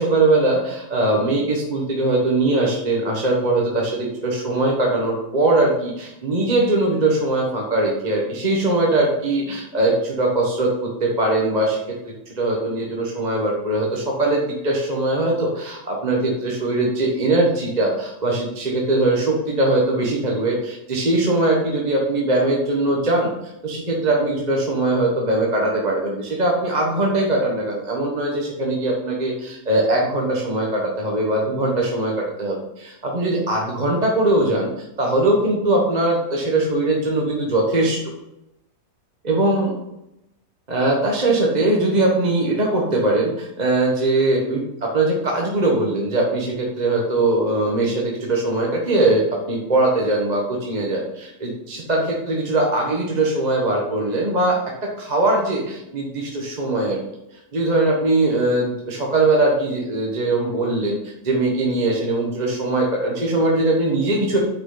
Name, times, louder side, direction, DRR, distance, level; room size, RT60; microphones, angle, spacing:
voice 1, 0.0-11.8 12.0-23.3 23.6-32.1 32.4-34.7 35.0-38.0 39.2-39.8 40.7-54.6 55.0-57.0 57.5-61.0 61.2-64.4, right 2 dB, 30° right, -2 dB, 1.4 m, -21 dB
9.1 x 6.1 x 3.9 m, 0.86 s
omnidirectional pair, 1.6 m